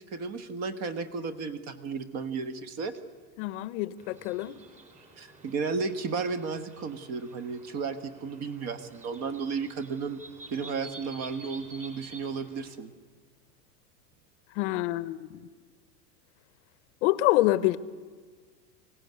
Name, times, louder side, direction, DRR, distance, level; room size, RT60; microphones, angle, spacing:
voice 1, 0.0-2.9 5.2-10.2 10.5-12.9, right 5 dB, 30° right, 1.4 m, -33 dB
voice 2, 3.4-4.6 14.5-15.5 17.0-17.8, left 17 dB, 45° left, 0.9 m, -26 dB
sound 1, 4.0-12.7, right 2 dB, 15° right, 3.5 m, -50 dB
23.0 x 17.5 x 9.5 m
supercardioid pair, 150°, 48 cm